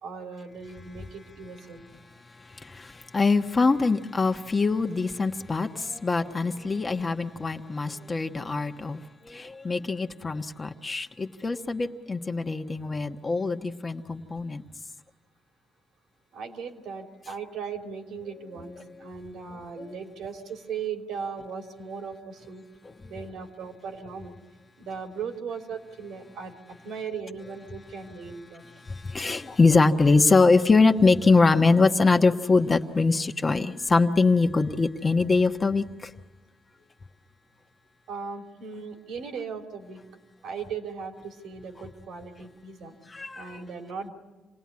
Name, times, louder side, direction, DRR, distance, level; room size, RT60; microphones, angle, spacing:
voice 1, 0.0-1.8 16.3-22.7 23.1-24.4 24.8-28.6 38.1-40.0 40.4-42.9 43.3-44.1, right 5 dB, 80° right, 3 dB, 3.2 m, -38 dB
voice 2, 3.1-14.6 22.8-23.1 29.0-36.1 43.1-43.6, left 3 dB, 30° left, 5 dB, 1.3 m, -23 dB
28.0 x 18.0 x 9.7 m, 1.2 s
cardioid pair, 90°, 0 cm